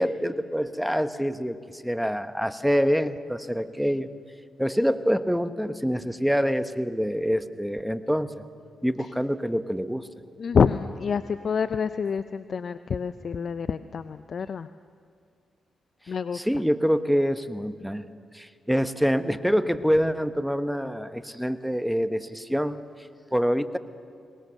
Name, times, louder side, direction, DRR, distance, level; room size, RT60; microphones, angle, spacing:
voice 1, 0.0-4.1 4.6-8.4 8.8-10.1 16.3-18.0 18.3-23.8, equal, ahead, 11 dB, 1.2 m, -26 dB
voice 2, 10.4-14.7 16.1-16.4, left 6 dB, 60° left, 12 dB, 0.5 m, -27 dB
23.0 x 19.5 x 6.6 m, 2.3 s
hypercardioid pair, 45°, 0 cm